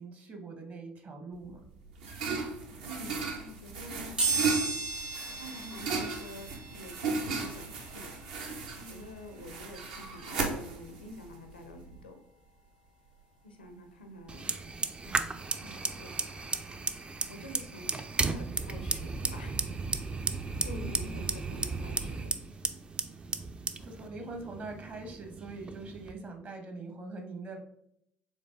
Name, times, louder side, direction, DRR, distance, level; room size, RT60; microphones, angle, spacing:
voice 1, 0.0-1.7 8.8-9.1 20.7-20.9 23.8-27.6, right 3 dB, 35° right, 5 dB, 0.9 m, -43 dB
sound 1, 1.4-12.0, right 4 dB, 65° right, 0.7 m, -36 dB
voice 2, 2.9-4.2 5.4-8.1 8.8-12.2 13.4-14.6 15.0-16.1 17.3-17.9 18.2-19.6 20.6-22.3, left 1 dB, 80° left, 5 dB, 0.6 m, -47 dB
sound 2, 4.2-14.8 15.3-15.4 16.6-16.7 16.9-19.0 19.4-22.0 22.4-22.6 22.9-23.0, right 4 dB, 85° right, 1.7 m, -39 dB
Fire, 14.3-26.1, right 4 dB, 20° right, 0.3 m, -35 dB
5.3 x 3.5 x 2.5 m, 0.74 s
figure-of-eight pair, 55°, 5 cm